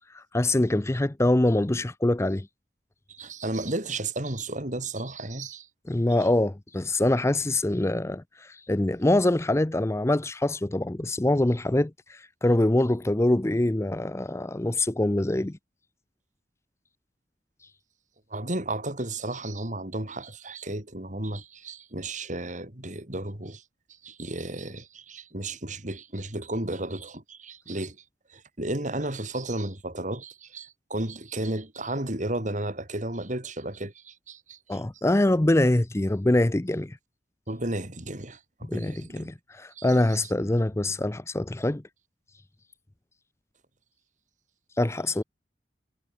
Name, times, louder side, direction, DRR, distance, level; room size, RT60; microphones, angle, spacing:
voice 1, 0.1-2.5 5.9-15.6 34.7-37.0 38.7-41.8 44.8-45.2, left 1 dB, 15° left, 0.5 m, -24 dB
voice 2, 3.1-5.7 18.3-23.6 24.0-28.0 28.3-34.8 37.5-39.3 39.8-39.9 40.2-40.3, right 1 dB, 45° right, 4.5 m, -33 dB
head